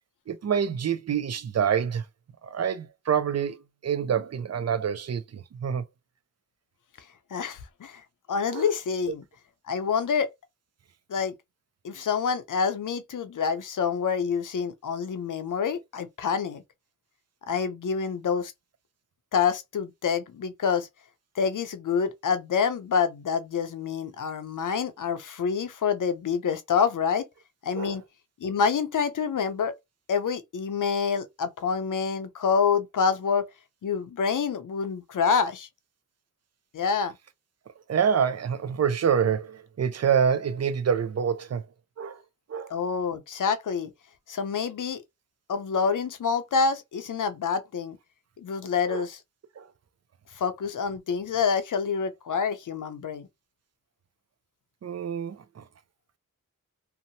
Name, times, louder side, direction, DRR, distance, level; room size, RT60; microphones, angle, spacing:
voice 1, 0.3-2.0 2.4-3.6 3.8-5.8 8.5-8.7 27.8-28.0 37.9-41.6 42.0-42.2 42.5-42.7 48.9-49.0 49.6-49.7 54.8-55.6, right 7 dB, 50° right, 0.5 m, -26 dB
voice 2, 7.3-8.0 8.3-9.2 9.7-10.3 11.1-11.3 11.8-16.6 17.5-18.5 19.3-20.9 21.4-27.3 27.6-28.0 28.4-29.7 30.1-33.5 33.8-35.7 36.7-37.1 42.7-43.9 44.3-45.0 45.5-48.0 48.4-49.2 50.4-53.3, left 6 dB, 60° left, 0.6 m, -27 dB
2.8 x 2.1 x 2.7 m
cardioid pair, 50°, 35 cm